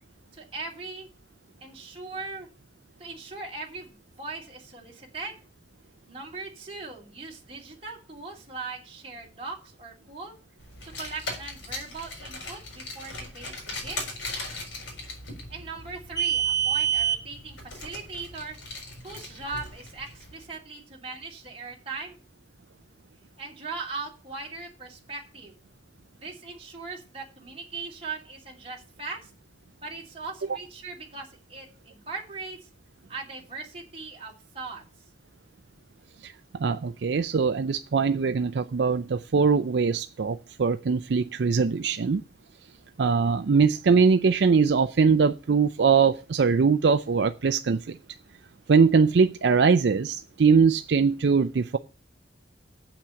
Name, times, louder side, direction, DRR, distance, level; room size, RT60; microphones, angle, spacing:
voice 1, 0.3-1.1 1.6-2.5 3.0-5.3 6.1-10.4 11.0-14.2 15.5-18.6 19.0-22.2 23.4-25.5 26.2-29.3 29.8-32.6 33.1-34.8, right 4 dB, 30° right, 2.7 m, -39 dB
Car, 10.7-20.3, right 5 dB, 90° left, 4.3 m, -32 dB
voice 2, 36.2-42.2 43.0-48.0 48.7-51.8, right 5 dB, 65° right, 0.4 m, -22 dB
8.2 x 5.9 x 7.6 m
head